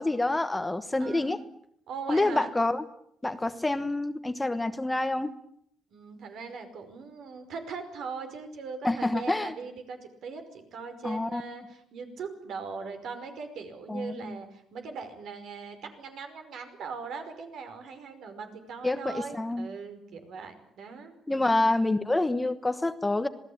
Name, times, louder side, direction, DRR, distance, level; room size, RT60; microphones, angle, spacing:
voice 1, 0.0-1.4 2.1-2.8 3.2-5.3 8.8-9.5 11.0-11.4 13.9-14.4 18.8-19.7 21.3-23.3, left 2 dB, 10° left, 10 dB, 1.2 m, -27 dB
voice 2, 1.0-1.3 1.9-2.5 5.9-21.7, right 5 dB, 65° right, 7 dB, 5.4 m, -40 dB
27.0 x 19.0 x 8.8 m, 0.69 s
cardioid pair, 140°, 0 cm